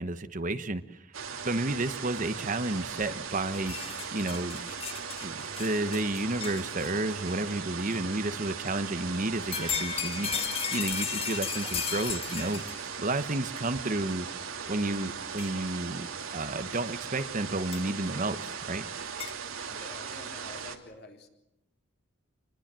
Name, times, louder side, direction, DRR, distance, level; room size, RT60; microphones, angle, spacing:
voice 1, 0.0-1.0 1.4-4.6 5.2-12.6 13.0-14.3 14.7-16.1 16.3-18.8, right 2 dB, 40° right, 11 dB, 1.1 m, -31 dB
sound 1, 1.1-20.8, right 6 dB, 85° right, 2.7 m, -38 dB
sound 2, 3.5-7.1 7.9-8.0 9.3-12.9 13.8-13.9 15.4-15.5 17.7-17.8 19.2-19.3, left 7 dB, 30° left, 1.3 m, -35 dB
voice 2, 19.6-21.3, left 2 dB, 55° left, 3 dB, 3.9 m, -49 dB
26.5 x 21.0 x 7.6 m, 0.87 s
head